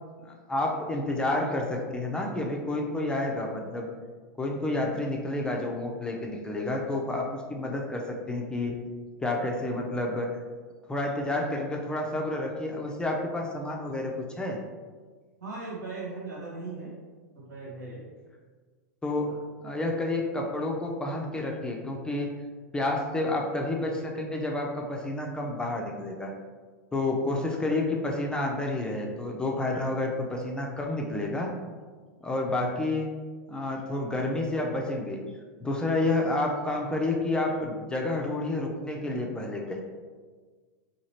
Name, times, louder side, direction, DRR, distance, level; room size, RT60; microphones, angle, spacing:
voice 1, 0.2-3.9 4.4-8.8 9.2-10.4 10.9-14.6 19.0-19.3 19.6-22.3 22.7-26.3 26.9-31.5 32.2-33.1 33.5-35.2 35.6-39.8, left 2 dB, 10° left, 0 dB, 0.4 m, -30 dB
voice 2, 15.4-16.9 17.3-18.0 19.3-19.4 32.4-32.7, right 3 dB, 80° right, -5 dB, 1.2 m, -39 dB
2.9 x 2.8 x 2.8 m, 1.5 s
hypercardioid pair, 110°, 9 cm